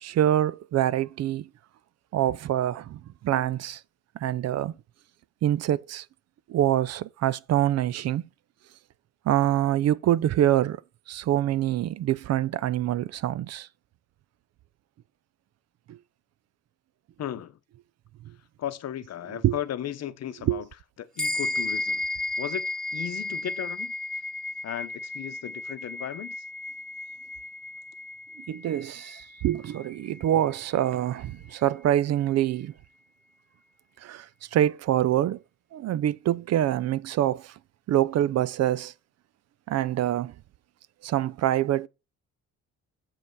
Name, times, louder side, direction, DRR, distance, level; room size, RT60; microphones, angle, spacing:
voice 1, 0.0-1.5 2.1-3.8 4.2-4.7 5.4-6.0 6.5-8.2 9.3-10.8 11.1-13.7 15.9-16.0 19.4-19.5 20.4-20.6 28.5-32.7 34.0-35.4 35.7-37.5 37.9-38.9 39.7-40.3 41.0-41.9, right 12 dB, 60° right, 0.4 m, -25 dB
voice 2, 17.2-17.6 18.6-20.7 21.0-22.0 22.4-22.7 22.9-23.9 24.6-26.4, left 11 dB, 60° left, 0.8 m, -35 dB
sound 1, 21.2-30.9, left 2 dB, ahead, 0.8 m, -34 dB
7.1 x 5.4 x 4.6 m
cardioid pair, 90°, 30 cm